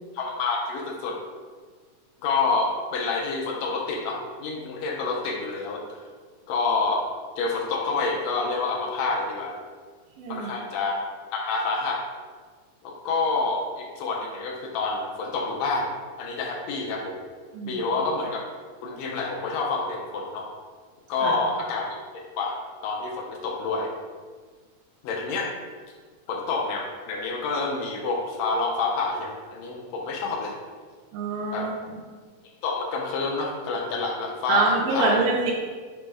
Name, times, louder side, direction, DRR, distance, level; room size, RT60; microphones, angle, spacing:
voice 1, 0.1-1.2 2.2-6.0 6.5-7.0 7.4-9.6 10.3-11.0 11.3-12.0 12.8-15.9 16.2-17.2 17.7-18.4 18.8-20.5 21.1-21.9 22.4-23.9 25.0-25.5 26.3-30.5 31.5-31.7 32.6-35.2, left 3 dB, 85° left, -1 dB, 1.5 m, -28 dB
voice 2, 10.2-10.5 17.5-17.8 21.2-21.3 31.1-31.7 34.5-35.5, right 4 dB, 85° right, -3 dB, 2.1 m, -25 dB
5.0 x 2.1 x 4.6 m, 1.5 s
omnidirectional pair, 3.6 m